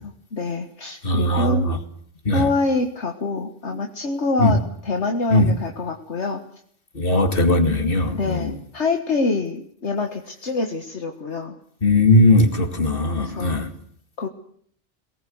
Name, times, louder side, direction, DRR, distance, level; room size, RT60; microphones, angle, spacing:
voice 1, 0.0-1.7 2.3-6.4 8.1-11.6 13.2-13.6 14.2-14.3, left 3 dB, 65° left, 1.9 m, -26 dB
voice 2, 1.0-1.8 2.2-2.5 4.4-4.6 5.3-5.6 6.9-8.6 11.8-13.7, left 1 dB, 45° left, 2.7 m, -19 dB
22.5 x 19.0 x 7.9 m
omnidirectional pair, 1.3 m